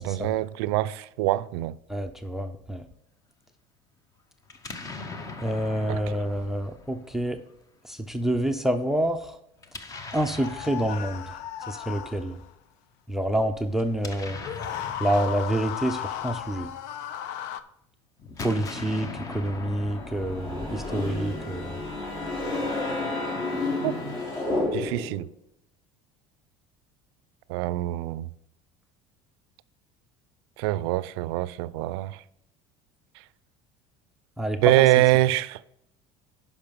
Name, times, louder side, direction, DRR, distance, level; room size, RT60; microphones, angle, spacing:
voice 1, 0.0-1.8 5.9-6.0 23.8-23.9 24.7-25.3 27.5-28.3 30.6-32.2 34.6-35.6, right 17 dB, 90° right, 0.4 m, -24 dB
voice 2, 1.9-2.8 5.4-7.4 7.9-9.2 10.1-11.2 11.7-12.4 13.1-14.4 15.0-16.7 18.4-19.1 19.3-21.7 34.4-34.7, right 1 dB, 5° right, 0.5 m, -27 dB
Explosion, 4.5-7.5 9.6-11.8 13.7-17.2 18.2-21.6, left 3 dB, 25° left, 0.9 m, -41 dB
sound 1, 10.1-12.5 14.4-17.6, left 10 dB, 75° left, 0.7 m, -35 dB
sound 2, 19.9-25.2, left 2 dB, 45° left, 3.3 m, -30 dB
10.5 x 5.4 x 5.2 m
cardioid pair, 140°, 13 cm